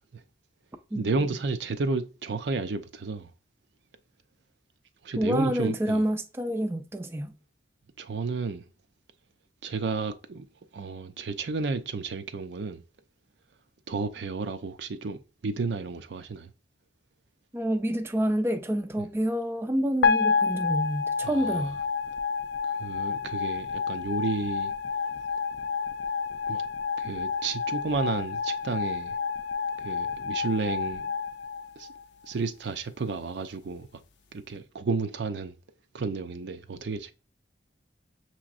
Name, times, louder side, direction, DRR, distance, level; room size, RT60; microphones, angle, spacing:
voice 1, 0.9-3.3 5.0-6.0 8.0-8.6 9.6-10.5 10.7-12.8 13.9-16.5 19.0-19.1 21.2-21.7 22.8-24.7 26.5-26.6 27.0-29.2 29.8-31.1 31.8-31.9 32.3-33.9 34.3-35.5 35.9-37.1, right 4 dB, 80° right, 0.5 m, -32 dB
voice 2, 5.2-7.3 17.5-21.8, equal, 15° right, 0.4 m, -28 dB
sound 1, 20.0-32.3, left 5 dB, 80° left, 0.5 m, -29 dB
6.1 x 3.0 x 2.5 m
head